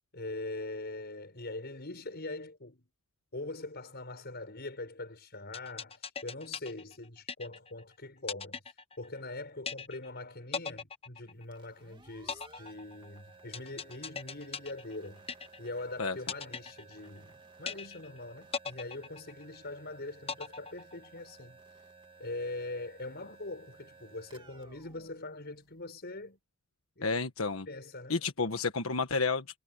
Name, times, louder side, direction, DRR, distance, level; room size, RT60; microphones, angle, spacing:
voice 1, 0.1-2.9 3.3-15.3 15.6-21.6 22.2-26.4 27.0-27.1 27.7-28.2, left 2 dB, 50° left, 6.2 m, -42 dB
sound 1, 5.5-7.8 8.3-9.3 9.7-10.2 10.5-11.8 12.3-15.8 16.3-17.3 17.7-18.2 18.5-19.8 20.3-21.3, left 5 dB, 30° left, 1.1 m, -40 dB
sound 2, 11.4-26.1, right 3 dB, 25° right, 2.6 m, -57 dB
voice 2, 27.0-27.7 28.1-29.6, left 4 dB, 80° left, 1.4 m, -31 dB
head